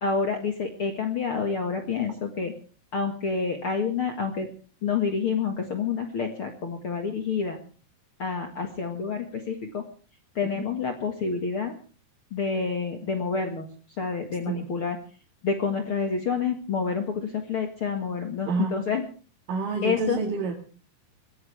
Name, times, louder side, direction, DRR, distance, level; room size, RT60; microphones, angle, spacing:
voice 1, 0.0-2.5 2.9-4.5 4.8-7.6 8.2-9.8 10.4-11.7 12.3-13.7 14.0-15.0 15.4-19.1 19.8-20.2, left 5 dB, 45° left, 4 dB, 2.3 m, -28 dB
voice 2, 18.5-18.8 19.5-20.5, right 4 dB, 80° right, 0 dB, 3.8 m, -28 dB
23.0 x 17.5 x 3.5 m, 0.38 s
omnidirectional pair, 3.8 m